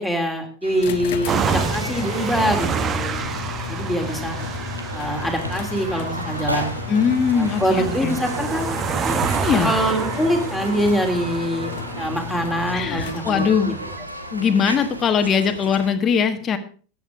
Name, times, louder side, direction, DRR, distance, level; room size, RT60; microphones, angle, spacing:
voice 1, 0.0-3.4 3.7-4.3 4.9-6.7 7.3-8.8 9.0-9.2 9.6-13.4 14.4-14.5, equal, ahead, 3 dB, 3.4 m, -24 dB
sound 1, 0.6-15.9, right 1 dB, 85° right, 1.4 m, -34 dB
sound 2, 0.8-13.6, left 14 dB, 55° left, 0.8 m, -34 dB
sound 3, 1.3-14.0, right 6 dB, 30° right, 0.9 m, -29 dB
voice 2, 6.9-8.2 9.4-9.7 12.7-13.8 14.3-16.6, left 6 dB, 30° left, 6 dB, 1.3 m, -21 dB
14.5 x 9.1 x 4.8 m, 0.39 s
figure-of-eight pair, 80°, 0 cm